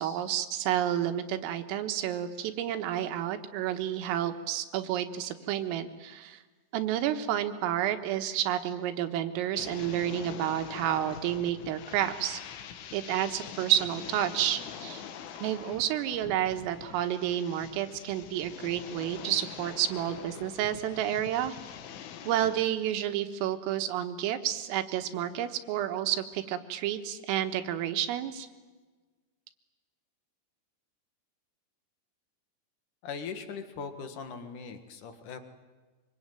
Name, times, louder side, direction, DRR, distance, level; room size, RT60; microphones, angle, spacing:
voice 1, 0.0-6.4 6.7-12.4 12.9-15.0 15.4-21.5 22.3-28.5, right 11 dB, 85° right, 8 dB, 4.0 m, -30 dB
sound 1, 9.6-22.6, left 8 dB, 75° left, 4.0 m, -44 dB
voice 2, 33.0-35.4, left 5 dB, 60° left, 8 dB, 2.3 m, -40 dB
24.5 x 24.0 x 9.2 m, 1.3 s
omnidirectional pair, 5.8 m